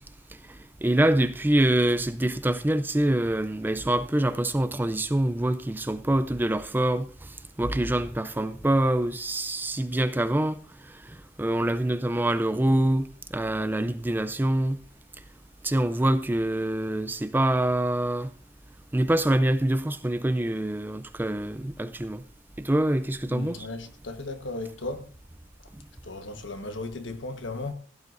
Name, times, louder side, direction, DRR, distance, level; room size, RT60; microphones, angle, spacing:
voice 1, 0.8-7.1 7.6-10.6 11.0-14.8 15.6-18.3 18.9-22.2 22.6-23.7, right 1 dB, 10° right, 0.4 m, -25 dB
voice 2, 23.3-25.1 26.0-27.7, left 2 dB, 85° left, 1.3 m, -36 dB
16.0 x 11.0 x 2.6 m
head